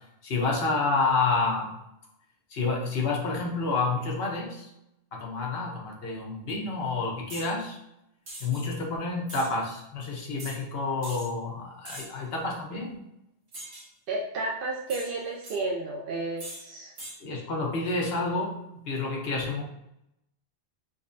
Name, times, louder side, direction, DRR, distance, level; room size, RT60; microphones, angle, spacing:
voice 1, 0.2-1.7 2.5-4.7 5.1-7.8 8.4-13.0 17.2-19.6, left 3 dB, 70° left, -1 dB, 1.0 m, -29 dB
sound 1, 7.3-7.5 8.3-8.6 9.3-9.5 10.4-10.6 11.0-11.3 11.8-12.2 13.5-13.9 14.9-15.6 16.4-16.6 17.0-17.2, right 1 dB, 85° right, 1.3 m, -41 dB
voice 2, 14.1-16.9, right 2 dB, 65° right, -2 dB, 0.7 m, -32 dB
5.1 x 2.1 x 2.6 m, 0.83 s
omnidirectional pair, 1.1 m